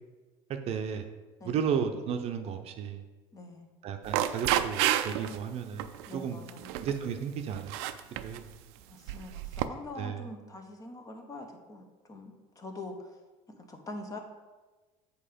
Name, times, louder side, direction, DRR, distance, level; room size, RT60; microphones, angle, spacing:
voice 1, 0.7-1.1 1.4-3.0 3.8-6.4 6.8-7.7 8.2-8.5 10.0-10.3, right 7 dB, 50° right, 6 dB, 0.7 m, -33 dB
voice 2, 3.3-3.7 6.1-6.7 8.9-13.2 13.5-14.2, left 2 dB, 25° left, 5 dB, 1.0 m, -44 dB
sound 1, 4.0-5.4 5.8-6.1 6.5-7.0 7.6-8.4 9.1-9.6, right 12 dB, 90° right, 0.4 m, -30 dB
7.6 x 4.6 x 5.1 m, 1.3 s
cardioid pair, 120°, 14 cm